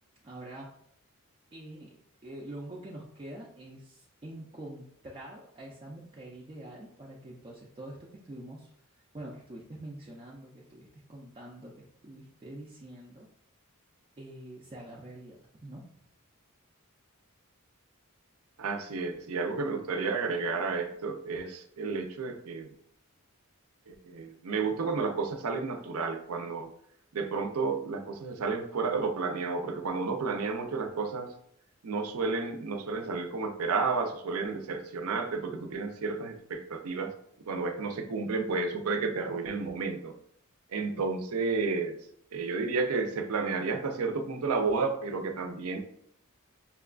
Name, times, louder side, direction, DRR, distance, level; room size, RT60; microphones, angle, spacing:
voice 1, 0.2-0.7 1.5-8.7 9.1-13.3 14.2-15.8, right 1 dB, 25° right, -3 dB, 0.4 m, -45 dB
voice 2, 18.6-22.7 23.9-26.7 27.1-31.3 31.8-37.1 37.5-40.1 40.7-42.0 42.3-45.8, right 4 dB, 75° right, 5 dB, 0.5 m, -31 dB
5.5 x 2.2 x 2.4 m, 0.69 s
head